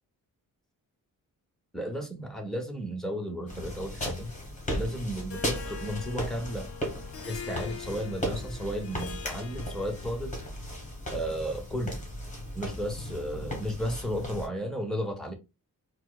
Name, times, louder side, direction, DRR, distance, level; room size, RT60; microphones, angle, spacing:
voice 1, 1.7-4.3 4.7-6.7 7.2-10.4 11.1-12.0 12.5-15.3, equal, ahead, 0.9 m, -34 dB
sound 1, 3.5-14.5, equal, 20° left, 1.3 m, -36 dB
Harp, 5.3-10.3, left 7 dB, 40° left, 0.5 m, -44 dB
4.4 x 2.0 x 2.3 m
wide cardioid pair, 140°, 35 cm